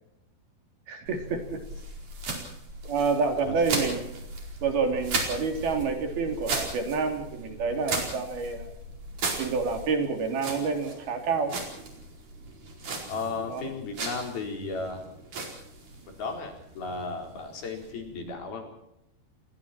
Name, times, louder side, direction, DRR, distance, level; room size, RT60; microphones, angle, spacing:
voice 1, 0.9-1.6 2.9-4.0 4.6-8.7 9.3-11.6 13.5-13.7, right 4 dB, 75° right, 5 dB, 5.2 m, -28 dB
sound 1, 1.1-18.3, right 3 dB, 55° right, 6.0 m, -37 dB
voice 2, 13.1-15.0 16.1-18.6, left 4 dB, 75° left, 3 dB, 6.3 m, -35 dB
29.5 x 20.5 x 4.5 m, 0.81 s
omnidirectional pair, 4.4 m